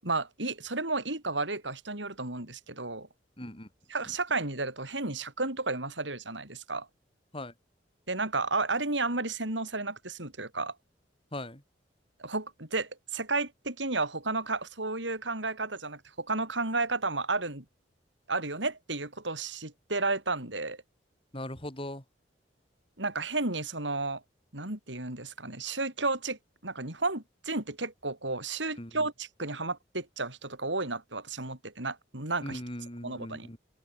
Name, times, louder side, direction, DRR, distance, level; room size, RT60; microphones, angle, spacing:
voice 1, 0.0-3.1 3.9-6.9 8.1-10.7 12.2-17.6 18.3-20.8 23.0-24.2 24.5-32.6 33.0-33.5, right 3 dB, 80° right, 7.7 m, -32 dB
voice 2, 3.4-3.7 7.3-7.5 11.3-11.6 21.3-22.0 28.8-28.9 32.4-33.6, left 1 dB, 30° left, 7.6 m, -39 dB
open air
head